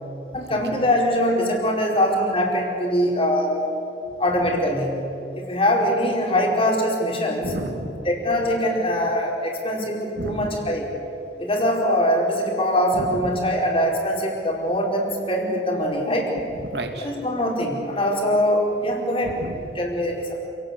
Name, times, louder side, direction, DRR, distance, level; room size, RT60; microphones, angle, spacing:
voice 1, 0.3-3.7 4.2-5.0 5.4-7.5 8.0-10.9 11.4-16.3 17.0-19.3 19.7-20.5, equal, 35° left, -1 dB, 5.0 m, -22 dB
voice 2, 7.4-7.9 10.2-10.5 12.9-13.3 16.6-17.1 19.2-19.6, right 1 dB, 65° right, 5 dB, 2.9 m, -31 dB
28.0 x 18.0 x 8.5 m, 2.8 s
head